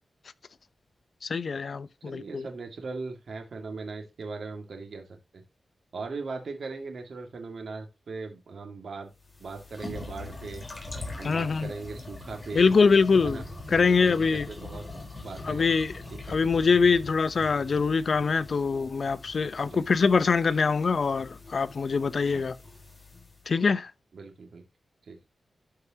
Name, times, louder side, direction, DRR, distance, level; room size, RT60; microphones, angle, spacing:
voice 1, 1.2-2.5 11.2-11.7 12.5-13.4 13.7-14.5 15.4-15.9 16.3-22.6 23.5-23.9, left 5 dB, 60° left, 0.7 m, -24 dB
voice 2, 2.1-5.4 5.9-9.1 9.4-10.6 11.2-12.7 13.2-13.4 13.7-14.8 15.2-15.7 16.1-16.4 19.6-20.0 22.3-22.5 24.1-24.6 25.1-25.2, right 4 dB, 70° right, 2.0 m, -39 dB
sound 1, 9.2-23.5, left 2 dB, 35° left, 4.1 m, -42 dB
12.5 x 4.8 x 2.8 m
wide cardioid pair, 80°, 0 cm